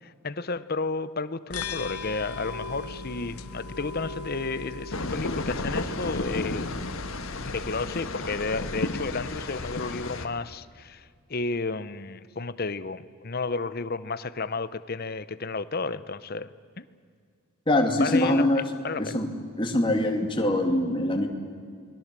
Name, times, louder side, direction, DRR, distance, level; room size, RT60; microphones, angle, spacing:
voice 1, 0.0-6.7 7.4-16.8 18.0-18.4 18.8-19.2, left 3 dB, 45° left, 15 dB, 0.8 m, -32 dB
sound 1, 1.5-8.0, left 3 dB, 85° left, 1.0 m, -38 dB
sound 2, 4.9-10.3, left 2 dB, 70° left, 1.6 m, -33 dB
voice 2, 17.7-18.6 19.0-19.3 19.6-21.3, left 1 dB, 20° left, 3 dB, 2.4 m, -23 dB
29.5 x 21.0 x 7.6 m, 2.1 s
head